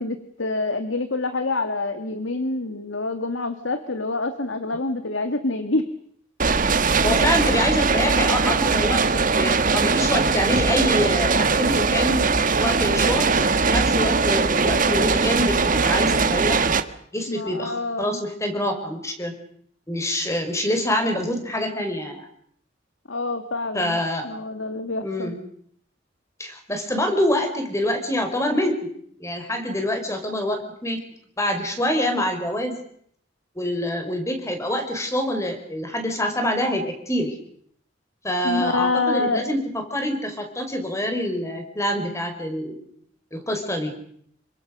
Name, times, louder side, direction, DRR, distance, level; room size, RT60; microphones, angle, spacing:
voice 1, 0.0-5.9 17.3-18.2 23.1-24.0 24.2-25.3 38.4-39.5, left 2 dB, 85° left, 9 dB, 1.9 m, -26 dB
sound 1, 6.4-16.8, right 4 dB, 45° right, 1.6 m, -20 dB
voice 2, 7.0-12.3 12.6-16.7 17.1-19.3 19.9-22.3 23.7-24.3 25.0-25.4 26.4-28.8 29.2-31.0 31.4-32.8 33.6-37.3 38.2-42.9 43.3-43.9, left 1 dB, 15° left, 5 dB, 5.3 m, -26 dB
28.0 x 24.5 x 6.6 m, 0.67 s
head